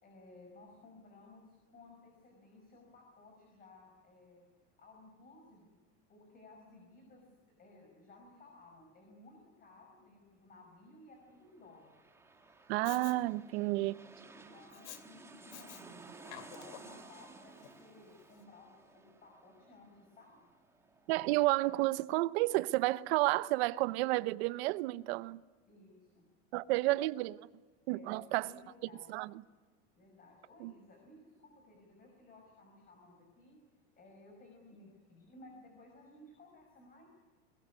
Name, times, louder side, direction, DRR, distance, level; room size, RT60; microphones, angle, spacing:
voice 1, 0.0-4.5 4.8-5.7 6.1-7.3 7.6-11.9 14.3-20.4 25.7-26.3 26.7-27.0 27.9-29.1 29.9-33.6 34.0-37.1, left 2 dB, 25° left, 5.7 m, -58 dB
sound 1, 11.4-22.8 23.1-23.2, right 3 dB, 5° right, 2.0 m, -56 dB
voice 2, 12.7-14.0 21.1-25.4 26.5-27.4 27.9-28.5 29.1-29.3 30.6-30.7, right 19 dB, 60° right, 0.9 m, -31 dB
Respiratory sounds, 12.8-13.2 14.7-15.0 15.5-15.8 16.2-17.0 17.6-17.7, left 12 dB, 80° left, 2.8 m, -49 dB
22.0 x 21.5 x 9.6 m
supercardioid pair, 145°, 36 cm